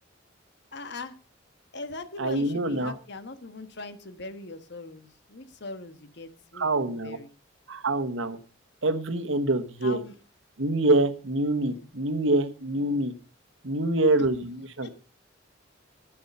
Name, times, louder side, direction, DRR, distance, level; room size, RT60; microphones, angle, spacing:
voice 1, 0.7-1.1 1.7-7.3 9.8-10.1 11.7-11.9 14.2-14.3 14.8-14.9, left 3 dB, 60° left, 10 dB, 1.4 m, -40 dB
voice 2, 2.2-2.9 6.5-7.2 7.7-8.4 8.8-10.0 10.6-13.1 13.6-14.9, right 2 dB, 75° right, 8 dB, 1.3 m, -25 dB
11.0 x 10.0 x 5.4 m, 0.37 s
head